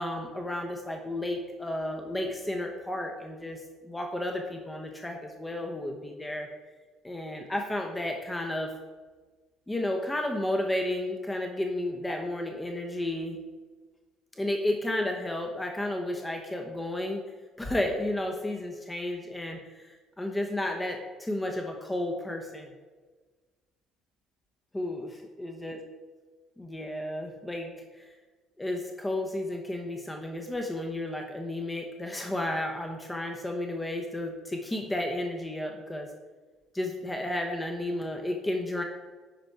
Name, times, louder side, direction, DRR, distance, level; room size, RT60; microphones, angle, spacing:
voice 1, 0.0-6.5 7.0-8.7 9.7-13.4 14.3-17.2 17.6-22.7 24.7-25.1 25.4-25.8 26.6-28.1 28.6-36.1 36.7-38.8, left 1 dB, 15° left, 2 dB, 1.0 m, -32 dB
10.5 x 4.4 x 4.7 m, 1.3 s
figure-of-eight pair, 55°, 0 cm